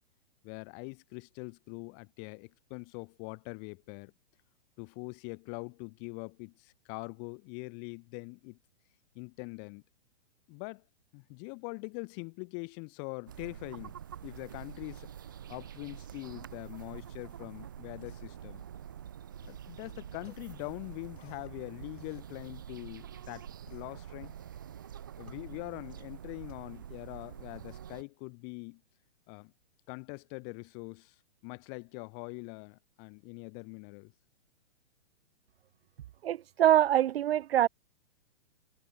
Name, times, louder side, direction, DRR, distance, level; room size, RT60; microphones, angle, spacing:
voice 1, 0.4-4.1 4.8-8.6 9.2-9.8 10.5-10.8 11.1-13.9 14.2-15.1 15.5-18.6 19.5-24.3 25.2-28.8 29.3-29.5 29.9-31.2 31.4-34.1, left 40 dB or more, 30° left, 3.7 m, -43 dB
sound 1, 13.3-28.0, right 9 dB, 20° right, 0.4 m, -46 dB
sound 2, 18.0-27.9, left 9 dB, 65° left, 7.9 m, -60 dB
voice 2, 36.2-37.7, right 11 dB, 60° right, 0.6 m, -24 dB
hypercardioid pair, 160°, 34 cm